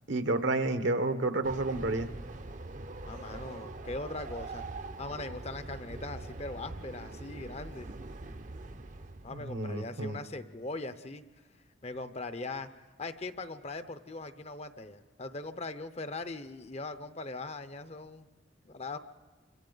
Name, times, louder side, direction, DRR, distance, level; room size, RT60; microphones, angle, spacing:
voice 1, 0.1-2.1 9.3-10.2, right 2 dB, 70° right, 9 dB, 1.1 m, -30 dB
Train, 1.4-9.6, right 2 dB, 40° right, 0.7 m, -43 dB
voice 2, 3.0-4.6 5.0-7.9 9.2-11.2 11.8-12.7 13.0-18.3 18.6-19.0, left 3 dB, 35° left, 11 dB, 0.7 m, -40 dB
28.5 x 25.5 x 4.0 m, 1.3 s
head